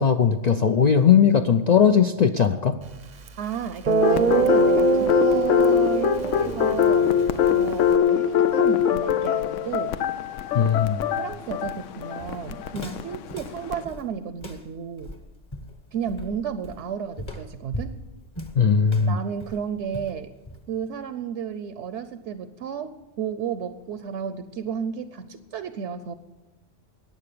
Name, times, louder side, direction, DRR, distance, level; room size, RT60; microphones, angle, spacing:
voice 1, 0.0-2.8 10.5-11.0 18.6-19.2, left 7 dB, 55° left, 7 dB, 0.4 m, -19 dB
Guitar, 3.3-3.4 3.9-8.0, right 6 dB, 45° right, 0.7 m, -24 dB
voice 2, 3.4-7.1 7.5-10.0 11.1-15.1 15.9-18.0 19.1-20.3 20.7-26.1, right 7 dB, 70° right, 11 dB, 1.0 m, -33 dB
sound 1, 4.0-13.8, left 9 dB, 85° left, 1.0 m, -23 dB
Walk footsteps, 11.6-20.9, left 1 dB, 25° left, 1.0 m, -39 dB
14.5 x 9.6 x 6.8 m, 1.1 s
omnidirectional pair, 1.2 m